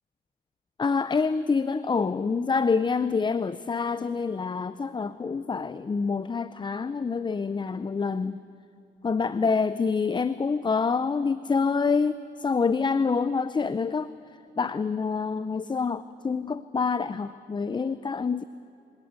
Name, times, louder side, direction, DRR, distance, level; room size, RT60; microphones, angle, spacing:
voice 1, 0.8-8.4 9.0-14.1 14.6-18.4, left 5 dB, 25° left, 15 dB, 0.5 m, -26 dB
25.5 x 18.0 x 8.1 m, 2.7 s
cardioid pair, 90°, 20 cm